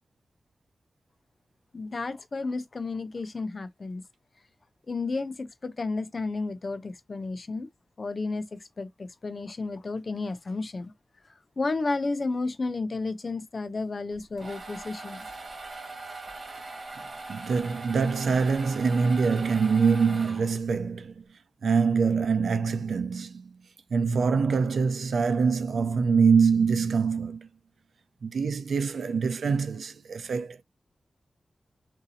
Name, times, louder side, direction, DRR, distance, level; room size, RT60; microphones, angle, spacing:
voice 1, 1.7-4.0 4.9-7.7 8.0-8.4 8.8-10.9 11.6-15.2, left 3 dB, 50° left, 0.5 m, -32 dB
sound 1, 14.1-20.8, right 3 dB, 60° right, 1.5 m, -41 dB
voice 2, 17.3-21.2 21.6-23.4 23.9-27.5 28.2-30.6, right 5 dB, 90° right, 0.5 m, -24 dB
3.9 x 2.7 x 2.7 m
wide cardioid pair, 90°, 0 cm